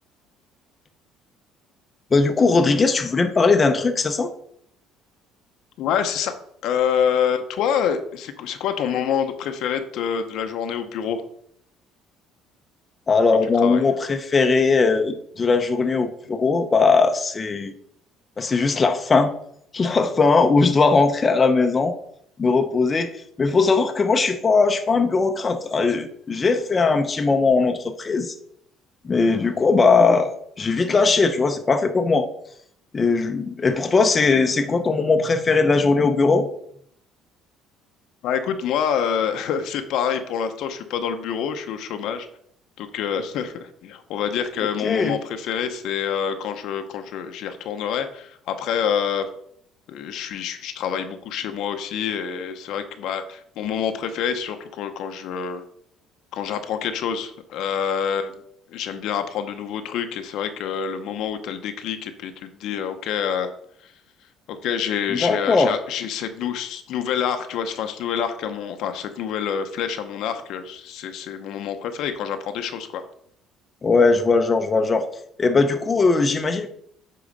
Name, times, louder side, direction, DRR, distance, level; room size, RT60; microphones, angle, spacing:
voice 1, 2.1-4.3 13.1-17.7 18.4-19.3 19.7-21.9 22.4-28.3 29.0-30.3 30.6-32.3 32.9-36.5 44.8-45.2 65.1-65.7 73.8-75.0 75.4-76.7, left 4 dB, 25° left, 6 dB, 0.6 m, -19 dB
voice 2, 5.8-6.3 6.6-11.2 13.6-13.9 38.2-42.3 42.8-49.3 49.9-55.6 56.3-58.4 58.7-63.5 63.8-63.9 64.5-73.0, left 8 dB, 65° left, 7 dB, 0.8 m, -27 dB
8.5 x 3.9 x 5.2 m, 0.70 s
cardioid pair, 140°, 0 cm